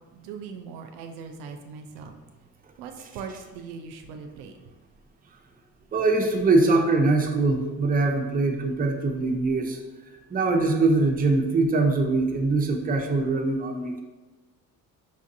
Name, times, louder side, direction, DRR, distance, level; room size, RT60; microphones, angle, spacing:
voice 1, 0.1-2.1 2.8-4.6, right 5 dB, 85° right, 5 dB, 0.5 m, -40 dB
voice 2, 5.9-9.8 10.3-14.0, right 3 dB, 25° right, 3 dB, 0.6 m, -22 dB
5.3 x 2.6 x 2.6 m, 1.2 s
supercardioid pair, 75°, 37 cm